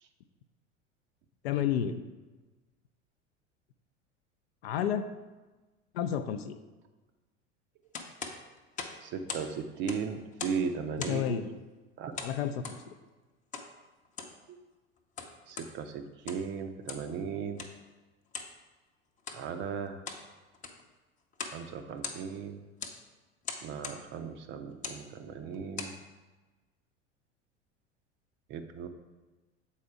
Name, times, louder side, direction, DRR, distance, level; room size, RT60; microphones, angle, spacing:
voice 1, 1.4-2.0 4.6-5.1 5.9-6.6 11.1-11.5 12.2-12.9, left 9 dB, 55° left, 9 dB, 0.6 m, -31 dB
sound 1, 7.9-9.5 9.8-10.7 11.0-11.3 12.2-12.8 13.5-13.7 14.1-14.4 15.0-15.7 16.1-16.5 16.9-17.1 17.6-17.8 18.3-18.5 19.2-19.4 19.8-20.3 20.5-20.9 21.3-21.6 21.9-22.4 22.8-23.0 23.4-24.0 24.7-25.0 25.5-26.0, left 5 dB, 20° left, 0.7 m, -40 dB
voice 2, 9.0-11.5 12.0-12.2 14.5-14.6 15.5-17.6 19.3-20.0 21.5-22.6 23.6-25.9 28.5-28.9, right 6 dB, 30° right, 8 dB, 0.5 m, -37 dB
7.4 x 4.2 x 4.7 m, 1.2 s
figure-of-eight pair, 80°, 36 cm